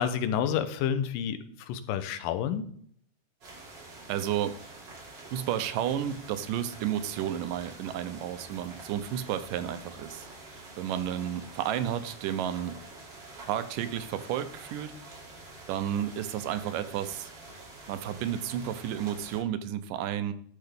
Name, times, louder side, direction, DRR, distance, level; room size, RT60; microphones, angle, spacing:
voice 1, 0.0-2.7, left 8 dB, 90° left, 11 dB, 2.5 m, -29 dB
sound 1, 3.4-19.4, right 2 dB, 35° right, 2.8 m, -47 dB
voice 2, 4.1-4.5 5.3-10.3 10.8-12.8 13.5-14.9 15.7-17.3 17.9-20.3, right 10 dB, 85° right, 11 dB, 2.3 m, -32 dB
12.0 x 6.7 x 3.5 m, 0.63 s
omnidirectional pair, 3.9 m